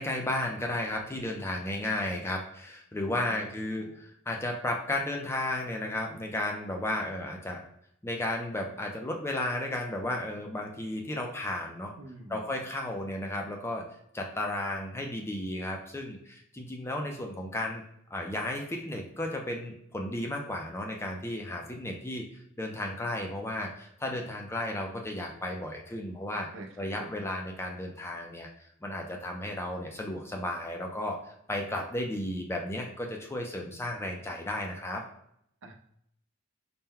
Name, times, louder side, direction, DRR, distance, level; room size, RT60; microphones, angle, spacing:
voice 1, 0.0-7.7 8.0-11.9 12.3-13.8 14.1-17.8 18.1-26.5 26.8-28.5 28.8-35.1, left 1 dB, 10° left, 1 dB, 0.4 m, -34 dB
voice 2, 3.3-4.0 12.0-12.5 26.5-27.3 35.6-35.7, right 2 dB, 60° right, 2 dB, 0.7 m, -47 dB
4.2 x 2.1 x 3.7 m, 0.72 s
head